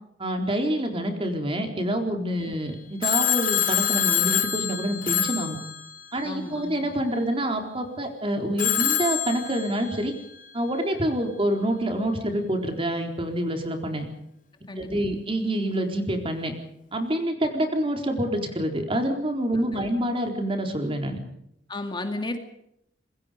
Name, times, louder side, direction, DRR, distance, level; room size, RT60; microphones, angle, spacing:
voice 1, 0.2-5.6 6.1-10.1 10.5-14.1 14.8-16.5 16.9-21.2, right 1 dB, 30° right, 4 dB, 4.0 m, -27 dB
Telephone, 3.0-6.3 8.6-10.1, left 10 dB, 45° left, 2.6 m, -26 dB
voice 2, 6.2-6.9 14.7-15.2 19.5-19.9 21.7-22.4, left 2 dB, 25° left, 5 dB, 2.3 m, -34 dB
26.5 x 22.0 x 5.2 m, 0.77 s
head